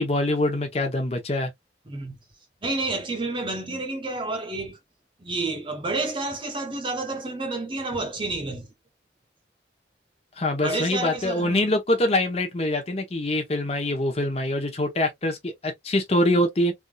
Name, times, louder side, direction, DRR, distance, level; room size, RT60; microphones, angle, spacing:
voice 1, 0.0-1.5 10.4-16.7, left 1 dB, 35° left, 0.9 m, -24 dB
voice 2, 1.9-2.2 2.6-4.8 5.2-8.7 10.6-11.7, right 2 dB, 30° right, 0.8 m, -30 dB
3.4 x 2.7 x 2.3 m
head